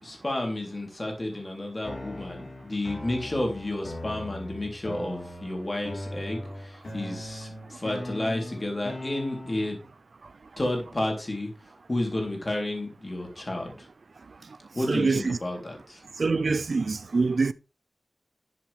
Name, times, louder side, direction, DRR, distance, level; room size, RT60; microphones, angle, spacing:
voice 1, 0.0-9.8 10.6-11.5 11.9-13.9 14.8-16.0, left 1 dB, 35° left, 3.6 m, -31 dB
sound 1, 1.8-9.8, left 1 dB, 60° left, 4.2 m, -39 dB
voice 2, 14.9-15.4 16.2-17.5, right 4 dB, 70° right, 0.6 m, -24 dB
11.5 x 7.4 x 3.5 m
wide cardioid pair, 95°, 0 cm